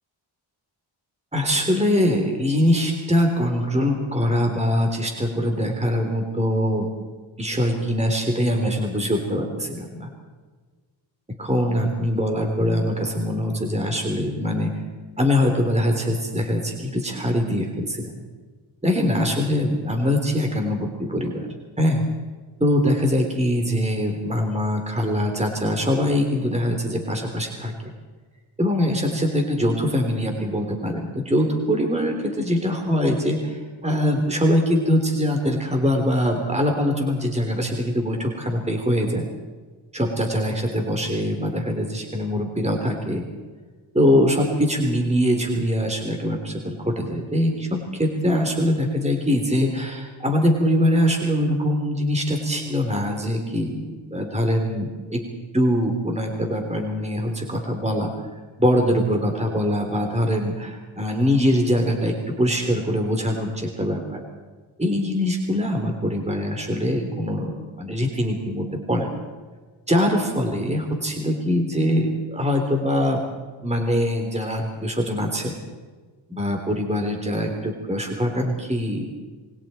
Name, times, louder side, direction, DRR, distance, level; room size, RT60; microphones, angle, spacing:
voice 1, 1.3-6.9 7.4-10.1 11.4-14.8 15.2-18.1 18.8-21.5 21.8-22.0 22.6-27.7 28.6-39.2 39.9-43.3 43.9-55.2 55.5-58.1 58.6-64.2 64.8-69.1 69.9-73.2 73.6-75.5 76.3-79.1, equal, 15° right, 2 dB, 3.7 m, -23 dB
27.5 x 22.5 x 4.5 m, 1.4 s
cardioid pair, 75°, 49 cm